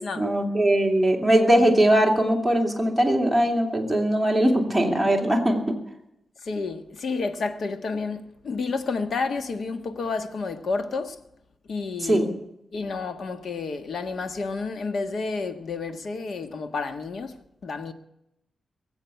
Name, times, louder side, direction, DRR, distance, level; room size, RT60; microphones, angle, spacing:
voice 1, 0.1-5.6 12.0-12.3, right 1 dB, ahead, 3.1 m, -20 dB
voice 2, 6.4-11.2 11.7-12.3 12.7-17.4 17.6-17.9, left 4 dB, 65° left, 1.5 m, -30 dB
22.0 x 8.1 x 8.1 m
wide cardioid pair, 115°, 0 cm